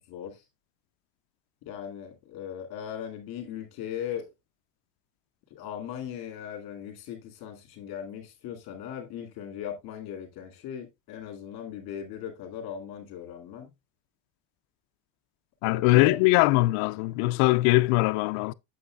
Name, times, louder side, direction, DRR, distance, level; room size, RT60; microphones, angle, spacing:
voice 1, 0.1-0.4 1.6-4.3 5.5-13.7 15.6-16.2, left 9 dB, 50° left, 2.5 m, -38 dB
voice 2, 15.6-18.5, left 20 dB, 85° left, 0.6 m, -22 dB
8.5 x 7.3 x 2.3 m
cardioid pair, 170°, 49 cm